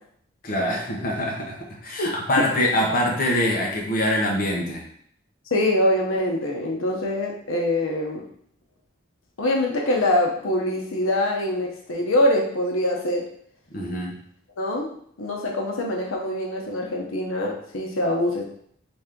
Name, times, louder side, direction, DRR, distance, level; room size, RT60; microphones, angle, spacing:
voice 1, 0.4-4.8 13.7-14.2, left 1 dB, 45° left, -1 dB, 0.9 m, -24 dB
voice 2, 5.5-8.2 9.4-13.2 14.6-14.9 15.2-18.4, left 1 dB, 90° left, 0 dB, 0.8 m, -24 dB
4.2 x 3.3 x 3.7 m, 0.66 s
head